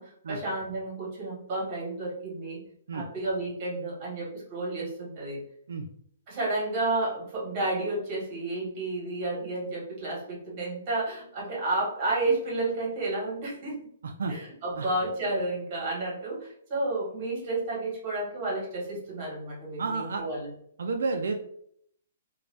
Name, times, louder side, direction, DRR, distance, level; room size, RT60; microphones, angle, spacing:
voice 1, 0.0-2.6 2.9-5.4 6.3-13.8 14.3-20.5, right 2 dB, 25° right, -4 dB, 1.1 m, -31 dB
voice 2, 14.0-14.3 14.8-14.9 19.8-20.2 20.8-21.4, right 4 dB, 75° right, 4 dB, 0.3 m, -30 dB
2.5 x 2.2 x 3.2 m, 0.68 s
hypercardioid pair, 175°, 0 cm